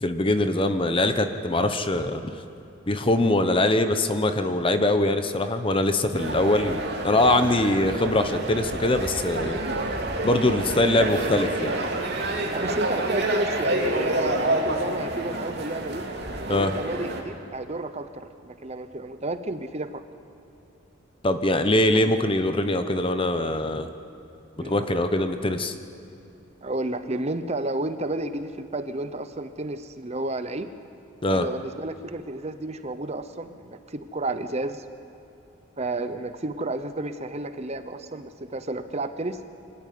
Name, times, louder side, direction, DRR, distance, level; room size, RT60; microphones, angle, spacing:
voice 1, 0.0-2.3 2.9-9.6 10.2-11.7 16.5-16.7 21.2-23.9 24.6-25.7 31.2-31.4, left 1 dB, 25° left, 8 dB, 1.0 m, -23 dB
sound 1, 6.1-17.2, right 1 dB, 55° right, 2.8 m, -28 dB
voice 2, 12.5-16.0 16.5-20.0 21.6-22.2 24.5-24.8 26.6-30.7 31.3-34.8 35.8-39.4, right 2 dB, 35° right, 10 dB, 0.9 m, -31 dB
25.5 x 13.0 x 9.5 m, 2.8 s
head